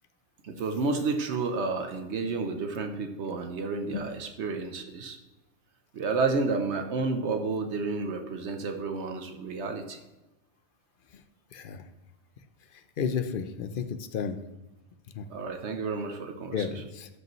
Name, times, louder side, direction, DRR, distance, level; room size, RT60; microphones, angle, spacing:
voice 1, 0.4-5.2 5.9-10.0 15.3-16.8, right 4 dB, 70° right, 5 dB, 1.0 m, -31 dB
voice 2, 11.5-11.8 13.0-14.4 15.1-15.3 16.5-17.1, left 6 dB, 55° left, 9 dB, 0.7 m, -32 dB
12.0 x 5.3 x 3.1 m, 1.0 s
omnidirectional pair, 1.2 m